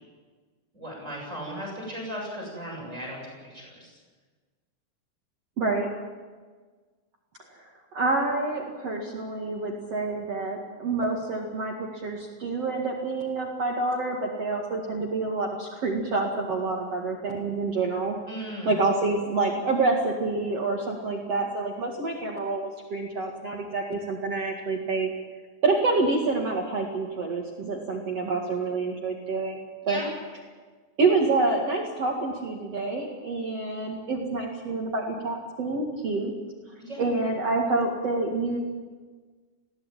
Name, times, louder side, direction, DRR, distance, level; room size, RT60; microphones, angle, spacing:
voice 1, 0.7-3.9 18.3-18.7 29.8-30.1 36.8-37.0, equal, 15° right, -2 dB, 7.8 m, -36 dB
voice 2, 5.6-5.9 7.5-7.6 7.9-18.2 18.6-25.1 25.6-30.0 31.0-36.3 37.0-38.6, right 3 dB, 45° right, 0 dB, 2.7 m, -27 dB
21.5 x 17.0 x 9.0 m, 1.4 s
omnidirectional pair, 4.6 m